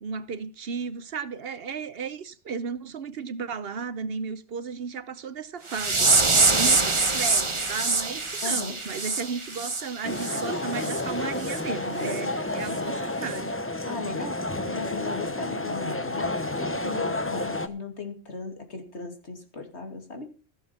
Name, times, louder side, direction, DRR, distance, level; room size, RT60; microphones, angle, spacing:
voice 1, 0.0-6.1 6.4-13.5, right 5 dB, 60° right, 0.9 m, -34 dB
sound 1, 5.7-10.4 10.8-11.0 11.4-11.6 12.1-12.2 12.7-12.8, right 3 dB, 25° right, 1.2 m, -24 dB
voice 2, 6.5-6.9 8.4-8.8 13.9-20.3, left 3 dB, 70° left, 2.9 m, -37 dB
sound 2, 10.0-17.7, left 2 dB, 10° left, 0.8 m, -30 dB
15.5 x 7.3 x 5.8 m
omnidirectional pair, 1.2 m